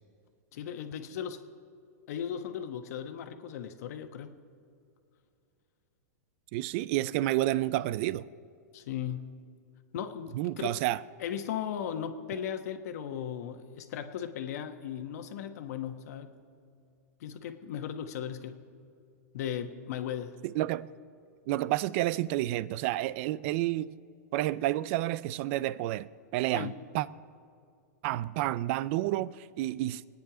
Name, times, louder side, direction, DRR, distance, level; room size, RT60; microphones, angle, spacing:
voice 1, 0.5-1.4 2.1-4.3 8.7-9.3 9.9-10.8 11.2-16.3 17.2-18.6 19.3-20.4 26.5-26.8, left 9 dB, 65° left, 1.3 m, -37 dB
voice 2, 6.5-8.3 10.3-11.0 20.4-20.9 21.5-23.9 24.3-27.1 28.0-30.1, right 15 dB, 45° right, 0.4 m, -30 dB
25.0 x 9.6 x 5.0 m
hypercardioid pair, 140°, 9 cm